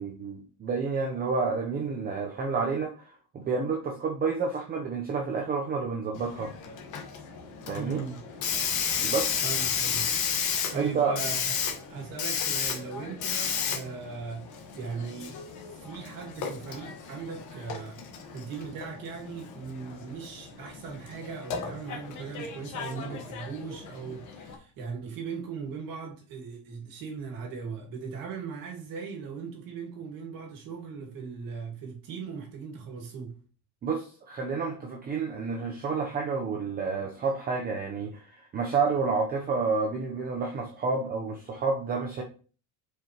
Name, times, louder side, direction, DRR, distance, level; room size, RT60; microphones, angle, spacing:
voice 1, 0.0-6.5 7.7-8.0 9.0-9.3 10.7-11.2 33.8-42.2, right 4 dB, 20° right, 0.6 m, -29 dB
Hiss, 6.2-24.6, left 7 dB, 40° left, 1.3 m, -33 dB
voice 2, 7.7-8.2 9.4-10.1 10.7-11.5 11.9-15.4 15.8-18.0 18.3-33.4, right 5 dB, 45° right, 2.0 m, -39 dB
7.5 x 5.0 x 2.9 m
cardioid pair, 155°, 45 cm